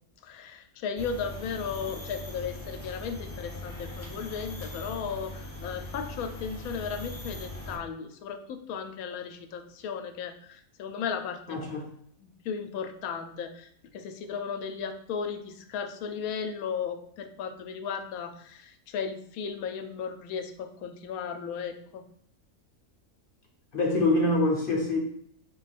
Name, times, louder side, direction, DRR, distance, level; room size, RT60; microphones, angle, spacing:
voice 1, 0.2-11.6 12.2-22.1, left 6 dB, 85° left, 7 dB, 1.0 m, -35 dB
sound 1, 1.0-7.8, left 2 dB, 15° left, 0.5 m, -40 dB
voice 2, 11.5-11.9 23.7-25.0, left 2 dB, 50° left, 0 dB, 0.7 m, -25 dB
4.4 x 2.3 x 4.1 m, 0.67 s
omnidirectional pair, 1.5 m